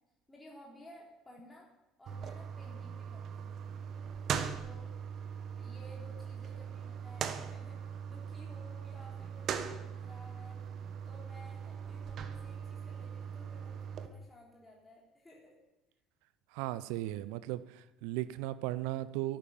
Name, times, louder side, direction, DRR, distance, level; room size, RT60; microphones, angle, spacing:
voice 1, 0.3-1.7 2.0-3.7 4.6-4.9 5.6-10.6 11.0-15.6, left 1 dB, 15° left, -3 dB, 3.7 m, -56 dB
sound 1, 2.1-14.1, right 7 dB, 50° right, 1.3 m, -40 dB
voice 2, 16.5-19.4, right 15 dB, 65° right, 15 dB, 0.6 m, -36 dB
13.5 x 11.5 x 7.1 m, 0.98 s
figure-of-eight pair, 60°, 0 cm